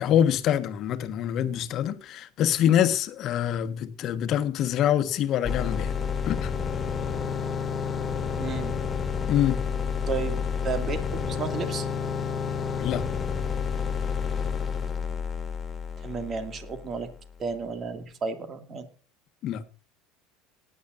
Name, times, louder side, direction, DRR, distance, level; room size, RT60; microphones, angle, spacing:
voice 1, 0.0-5.9 6.3-6.5 9.2-9.6 12.8-13.1 19.4-19.6, left 10 dB, 50° left, 1.4 m, -25 dB
sound 1, 5.4-17.3, left 6 dB, 25° left, 2.2 m, -30 dB
voice 2, 8.4-8.8 10.1-11.9 16.0-17.1 17.4-18.9, right 5 dB, 35° right, 2.3 m, -33 dB
18.5 x 10.5 x 2.6 m
hypercardioid pair, 85°, 0 cm